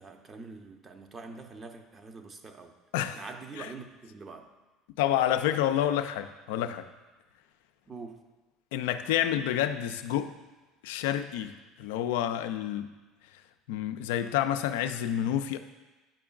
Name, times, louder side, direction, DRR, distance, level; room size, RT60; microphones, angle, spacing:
voice 1, 0.0-2.7 3.1-4.5 7.9-8.2, right 4 dB, 30° right, 5 dB, 0.7 m, -45 dB
voice 2, 2.9-3.3 3.6-3.7 5.0-6.9 8.7-10.3 10.8-12.9 13.7-15.6, left 11 dB, 75° left, 9 dB, 0.3 m, -29 dB
9.0 x 5.0 x 2.4 m, 1.2 s
hypercardioid pair, 75°, 0 cm